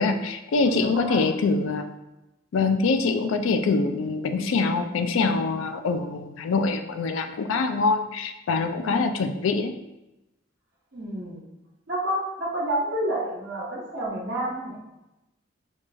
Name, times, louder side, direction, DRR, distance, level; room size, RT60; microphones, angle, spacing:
voice 1, 0.0-1.9 2.5-9.7, left 4 dB, 85° left, 8 dB, 0.3 m, -24 dB
voice 2, 0.7-1.3 8.8-9.1 10.9-11.4 11.9-14.8, right 1 dB, 65° right, -6 dB, 1.0 m, -29 dB
4.6 x 2.5 x 2.3 m, 0.96 s
head